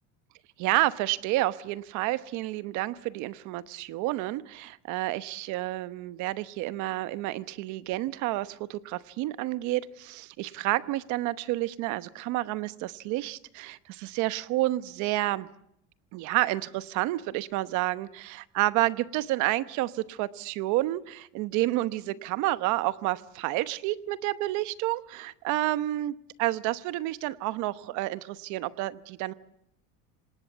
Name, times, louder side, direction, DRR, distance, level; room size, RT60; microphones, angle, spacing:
voice 1, 0.6-15.5 16.1-29.3, right 17 dB, 55° right, 15 dB, 1.0 m, -30 dB
26.0 x 19.5 x 8.2 m, 0.76 s
cardioid pair, 170°, 35 cm